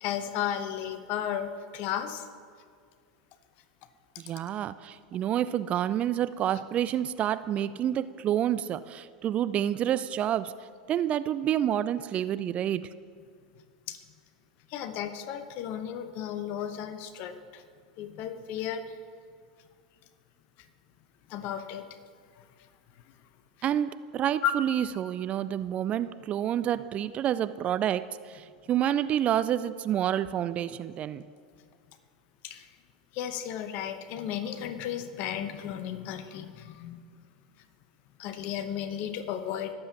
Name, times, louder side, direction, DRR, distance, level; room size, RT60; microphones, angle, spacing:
voice 1, 0.0-2.3 13.9-14.0 14.7-17.6 18.0-19.0 21.3-21.9 22.4-22.5 24.4-24.5 32.4-32.7 33.1-37.0 38.2-39.7, left 9 dB, 50° left, 10 dB, 0.9 m, -34 dB
voice 2, 4.2-10.5 10.9-12.9 23.6-31.2, right 10 dB, 35° right, 15 dB, 0.3 m, -28 dB
20.5 x 7.7 x 2.9 m, 2.1 s
hypercardioid pair, 90°, 4 cm